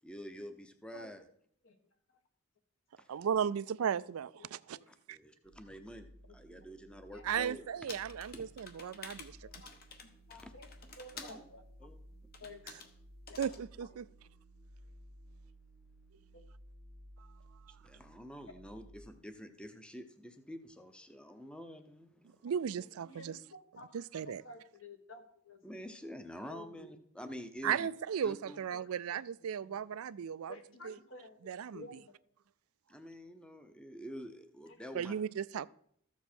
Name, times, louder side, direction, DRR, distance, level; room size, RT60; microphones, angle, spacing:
voice 1, 0.0-1.2 3.0-3.2 4.9-7.6 8.3-8.4 10.4-10.5 11.2-11.4 11.8-11.9 17.8-22.4 25.6-27.9 28.2-28.6 32.9-35.1, equal, 5° left, 0.7 m, -48 dB
voice 2, 3.1-4.8 5.1-5.2 7.2-9.4 13.4-14.0 22.4-23.3 23.9-24.4 27.6-30.5 30.8-30.9 31.5-31.8 34.9-35.7, right 8 dB, 80° right, 0.4 m, -35 dB
sound 1, 5.4-19.0, right 1 dB, 85° left, 5.2 m, -57 dB
sound 2, 7.9-11.4 12.3-12.9 13.3-13.6, left 5 dB, 45° left, 1.1 m, -50 dB
voice 3, 9.4-10.7 11.0-11.6 12.4-12.8 13.3-13.4 13.8-14.3 16.3-16.4 22.6-23.9 24.2-25.6 26.5-26.9 28.7-29.8 30.5-32.1 34.7-34.8, left 2 dB, 60° left, 1.4 m, -53 dB
14.0 x 7.2 x 4.4 m
head